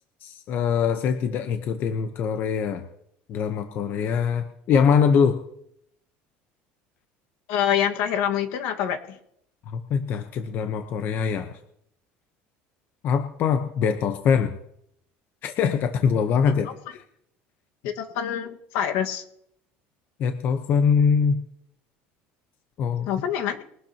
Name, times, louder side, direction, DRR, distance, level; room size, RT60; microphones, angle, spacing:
voice 1, 0.2-2.8 3.3-5.4 9.7-11.5 13.0-14.6 15.4-17.0 20.2-21.4 22.8-23.1, left 6 dB, 45° left, 7 dB, 1.0 m, -23 dB
voice 2, 7.5-9.2 16.6-16.7 17.8-19.2 23.1-23.6, left 9 dB, 70° left, 4 dB, 1.7 m, -26 dB
22.5 x 12.0 x 3.0 m, 0.74 s
cardioid pair, 140°, 5 cm